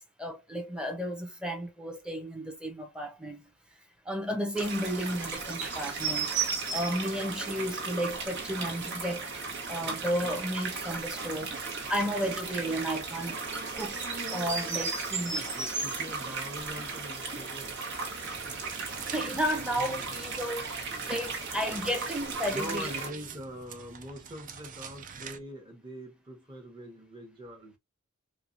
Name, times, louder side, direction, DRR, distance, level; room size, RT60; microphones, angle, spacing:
voice 1, 0.0-3.4 4.0-6.3 6.7-13.4 13.8-15.5 19.1-22.9, equal, 5° right, 0.9 m, -33 dB
sound 1, 4.6-23.1, right 4 dB, 55° right, 1.2 m, -35 dB
voice 2, 15.5-17.8 22.5-27.8, equal, 20° right, 1.2 m, -43 dB
sound 2, 18.2-25.4, right 6 dB, 40° right, 0.5 m, -46 dB
4.6 x 2.3 x 2.6 m
head